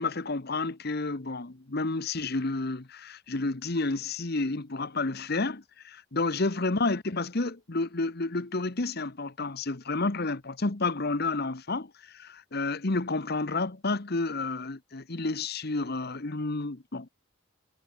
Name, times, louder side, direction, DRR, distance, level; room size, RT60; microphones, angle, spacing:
voice 1, 0.0-17.1, left 3 dB, 50° left, 1.2 m, -30 dB
head